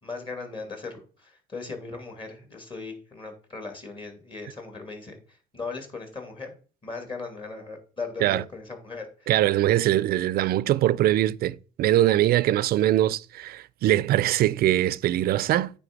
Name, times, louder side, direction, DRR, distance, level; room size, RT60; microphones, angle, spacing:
voice 1, 0.0-6.5 6.8-9.3, left 4 dB, 30° left, 2.6 m, -38 dB
voice 2, 9.3-15.7, right 13 dB, 65° right, 0.5 m, -22 dB
9.2 x 3.6 x 6.1 m
cardioid pair, 110°, 17 cm